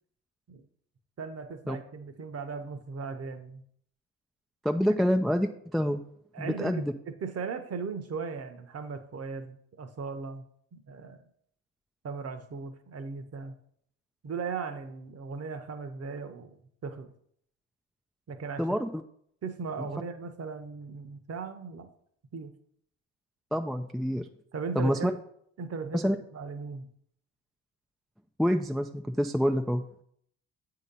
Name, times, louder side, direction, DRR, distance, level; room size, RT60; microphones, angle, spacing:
voice 1, 1.2-3.6 6.3-10.5 10.7-11.2 12.0-13.5 14.2-16.6 16.8-17.1 18.3-18.7 19.4-21.9 22.3-22.5 24.5-25.2 25.6-26.9, right 5 dB, 40° right, 9 dB, 0.9 m, -38 dB
voice 2, 4.6-6.0 6.4-6.9 18.6-18.9 19.8-19.9 23.5-24.3 24.8-25.1 25.9-26.2 28.4-29.8, equal, ahead, 6 dB, 0.3 m, -27 dB
8.0 x 2.9 x 5.3 m, 0.67 s
hypercardioid pair, 55°, 38 cm